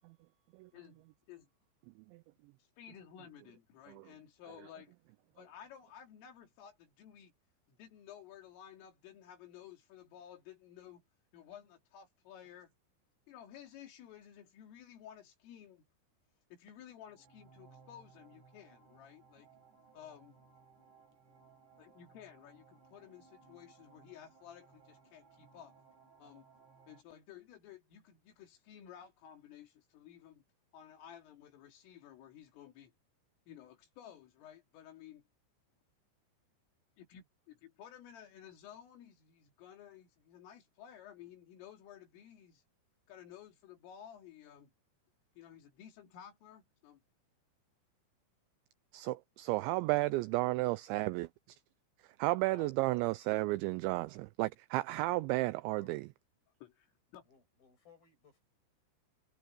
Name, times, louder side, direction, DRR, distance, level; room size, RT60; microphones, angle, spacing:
voice 1, 0.7-1.5 2.8-4.9 5.4-7.3 7.7-11.0 11.3-12.7 13.3-15.9 16.5-19.5 19.9-20.4 21.8-25.8 26.2-26.5 26.9-30.4 30.7-32.9 33.5-35.2 37.0-42.6 43.1-44.7 45.4-47.0 52.5-52.9 56.6-57.3, left 9 dB, 80° left, 5.4 m, -54 dB
sound 1, 17.0-27.0, right 5 dB, 60° right, 9.7 m, -62 dB
voice 2, 48.9-51.3 52.2-56.0, right 20 dB, 85° right, 2.6 m, -32 dB
voice 3, 57.2-58.4, left 7 dB, 45° left, 9.7 m, -63 dB
omnidirectional pair, 5.7 m